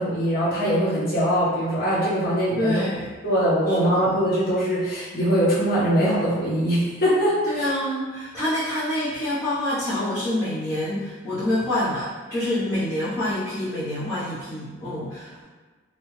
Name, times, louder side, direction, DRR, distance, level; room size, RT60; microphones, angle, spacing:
voice 1, 0.0-2.8 3.2-7.7, equal, 55° left, -9 dB, 0.9 m, -22 dB
voice 2, 2.6-3.1 3.7-4.2 7.4-15.4, left 1 dB, 15° left, -16 dB, 0.8 m, -27 dB
2.7 x 2.3 x 3.1 m, 1.3 s
head